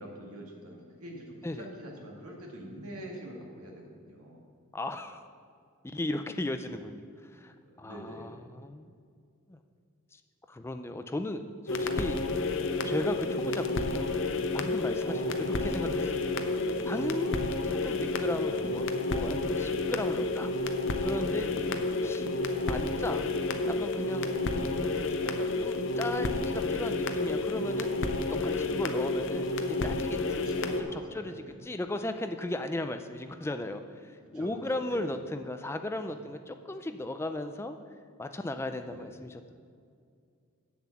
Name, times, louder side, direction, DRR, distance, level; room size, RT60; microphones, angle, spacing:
voice 1, 0.0-4.4 7.7-8.3 15.0-15.6 18.4-18.7 21.4-21.8 24.4-24.7 30.4-31.6 34.2-35.1 36.0-36.2 38.8-39.1, right 1 dB, 90° right, -1 dB, 2.0 m, -45 dB
voice 2, 4.7-5.3 5.8-8.9 9.5-9.6 10.1-10.2 10.5-12.2 12.8-14.1 14.5-16.2 16.8-17.3 17.6-20.5 21.0-22.3 22.7-23.3 23.7-28.0 28.3-33.8 34.1-37.8 38.2-39.5, left 1 dB, 10° left, 8 dB, 0.3 m, -36 dB
sound 1, 11.7-30.8, left 2 dB, 55° left, 0.6 m, -30 dB
7.7 x 7.2 x 7.1 m, 2.3 s
head